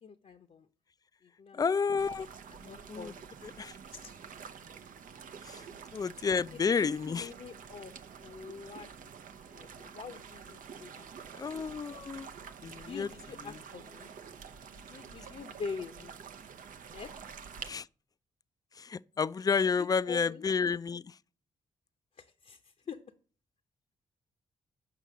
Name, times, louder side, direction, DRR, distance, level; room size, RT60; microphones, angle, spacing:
voice 1, 0.0-0.7 1.2-1.9 2.5-3.3 3.9-4.2 5.7-5.8 6.8-7.9 8.2-9.1 9.4-11.6 12.9-14.1 14.7-16.1 16.9-17.1 19.6-20.4 22.1-23.0, left 5 dB, 50° left, 0.7 m, -45 dB
voice 2, 1.5-2.3 2.9-3.1 3.6-3.7 5.5-5.6 5.9-7.3 11.3-12.3 12.6-13.1 17.7-17.9 18.8-21.2, left 5 dB, 25° left, 0.3 m, -30 dB
sound 1, 2.0-17.7, right 6 dB, 70° right, 0.6 m, -48 dB
6.8 x 5.4 x 6.1 m
supercardioid pair, 55°, 15 cm